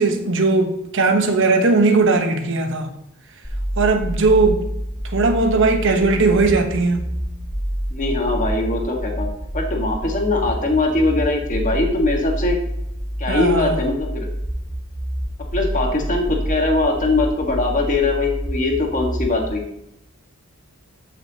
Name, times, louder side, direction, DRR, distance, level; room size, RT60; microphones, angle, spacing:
voice 1, 0.0-2.9 3.8-4.6 5.1-7.2 13.3-13.8, right 3 dB, 60° right, 1.0 m, -18 dB
sound 1, 3.4-19.4, equal, 15° left, 1.3 m, -27 dB
voice 2, 7.9-9.3 9.5-12.6 13.2-14.3 15.5-19.6, left 2 dB, 35° left, 1.5 m, -21 dB
13.0 x 6.1 x 2.8 m
head